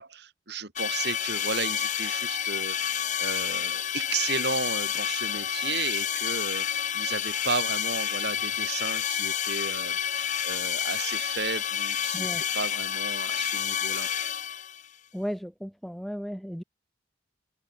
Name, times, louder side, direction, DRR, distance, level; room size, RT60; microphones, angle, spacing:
voice 1, 0.0-14.1, right 4 dB, 60° right, 2.8 m, -34 dB
sound 1, 0.8-14.9, left 9 dB, 40° left, 0.8 m, -29 dB
voice 2, 12.1-12.4 15.1-16.6, equal, ahead, 3.4 m, -35 dB
head